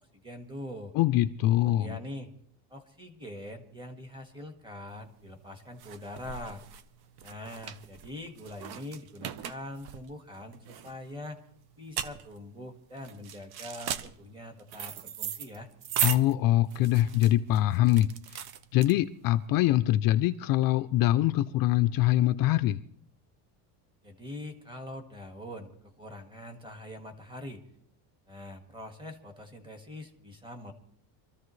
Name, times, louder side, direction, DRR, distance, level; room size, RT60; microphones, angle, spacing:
voice 1, 0.2-0.9 1.6-2.3 2.7-6.6 7.2-11.4 11.8-15.7 24.0-27.6 28.3-30.7, left 1 dB, 10° right, 1.7 m, -43 dB
voice 2, 0.9-2.0 16.0-18.4 18.7-22.8, left 14 dB, 50° left, 0.5 m, -24 dB
sound 1, 5.0-19.4, right 9 dB, 55° right, 1.0 m, -38 dB
25.5 x 14.0 x 3.2 m
cardioid pair, 165°, 45 cm